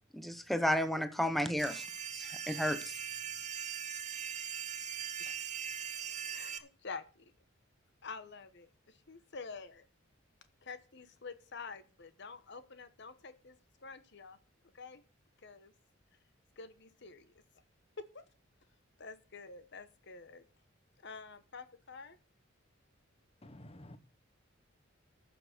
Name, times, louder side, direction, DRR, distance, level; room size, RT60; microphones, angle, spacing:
voice 1, 0.1-1.9 2.1-2.9, equal, ahead, 9 dB, 0.8 m, -32 dB
sound 1, 1.6-6.6, right 8 dB, 40° right, 1.0 m, -40 dB
voice 2, 5.2-5.6 6.3-7.3 8.0-9.8 10.6-14.4 14.7-15.0 15.4-15.7 16.6-17.3 18.1-18.2 19.0-20.4 21.0-22.2, left 4 dB, 60° left, 12 dB, 1.1 m, -48 dB
voice 3, 23.4-24.0, left 1 dB, 30° left, 12 dB, 0.9 m, -51 dB
14.5 x 6.2 x 6.6 m, 0.38 s
head